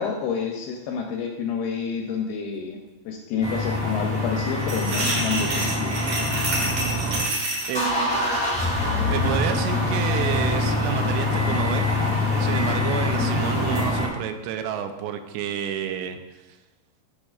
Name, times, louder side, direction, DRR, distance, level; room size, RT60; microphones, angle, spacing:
voice 1, 0.0-2.8 3.1-6.0 12.5-12.9, left 6 dB, 80° left, 2 dB, 2.3 m, -29 dB
sound 1, 3.4-7.2 7.5-14.1, left 2 dB, 10° left, 0.4 m, -24 dB
sound 2, 4.6-7.8, right 2 dB, 55° right, 2.2 m, -28 dB
voice 2, 7.7-8.5 9.1-11.9 12.4-16.2, right 9 dB, 85° right, 8 dB, 2.7 m, -30 dB
12.0 x 6.4 x 2.4 m, 1.1 s
omnidirectional pair, 5.0 m